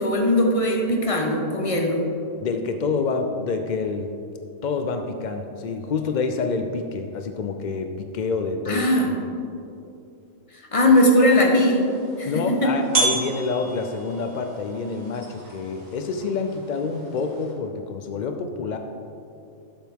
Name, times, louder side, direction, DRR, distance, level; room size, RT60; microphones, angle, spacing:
voice 1, 0.0-2.0 8.7-9.1 10.7-11.8 12.2-12.7, left 1 dB, 30° left, 1 dB, 1.0 m, -19 dB
voice 2, 2.4-4.1 4.6-8.9 12.2-18.8, left 4 dB, 70° left, 6 dB, 0.4 m, -27 dB
sound 1, 10.9-17.5, right 3 dB, 75° right, 2.2 m, -32 dB
12.0 x 7.5 x 3.6 m, 2.6 s
omnidirectional pair, 1.4 m